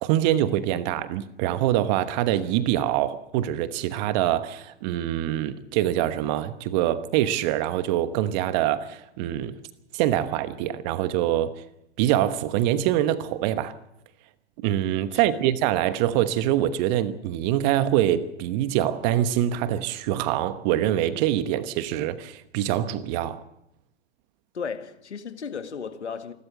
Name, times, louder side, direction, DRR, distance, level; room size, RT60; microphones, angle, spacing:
voice 1, 0.0-9.6 9.9-11.5 12.0-13.8 14.6-23.4, right 12 dB, 40° right, 1.2 m, -24 dB
voice 2, 15.1-15.5 24.5-26.3, left 6 dB, 80° left, 1.8 m, -35 dB
27.5 x 12.5 x 7.5 m
hypercardioid pair, 110°, 33 cm